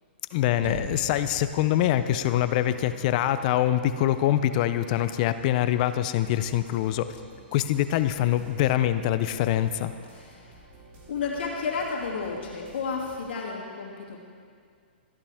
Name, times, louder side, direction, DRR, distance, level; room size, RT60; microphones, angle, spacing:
voice 1, 0.3-7.1 7.5-9.9, left 12 dB, 40° left, 12 dB, 0.5 m, -24 dB
sound 1, 0.6-5.4, right 9 dB, 70° right, 0.4 m, -43 dB
sound 2, 0.8-13.3, right 2 dB, 30° right, 2.1 m, -52 dB
voice 2, 11.1-14.2, left 5 dB, 70° left, -2 dB, 2.5 m, -32 dB
14.0 x 11.5 x 3.5 m, 2.1 s
hypercardioid pair, 140°, 6 cm